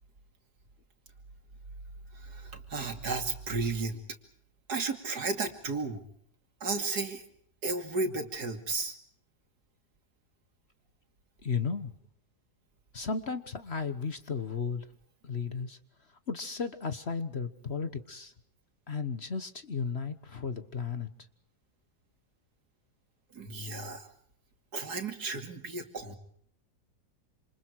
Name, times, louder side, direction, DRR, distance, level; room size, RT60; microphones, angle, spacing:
voice 1, 2.1-4.0 4.7-6.0 6.6-7.2 7.6-8.9 23.3-24.1 24.7-26.2, right 3 dB, 70° right, 6 dB, 3.0 m, -33 dB
voice 2, 11.4-11.9 12.9-14.9 15.2-15.8 16.3-18.3 18.9-21.1, left 5 dB, 40° left, 11 dB, 1.4 m, -34 dB
28.0 x 27.5 x 4.7 m, 0.64 s
omnidirectional pair, 1.8 m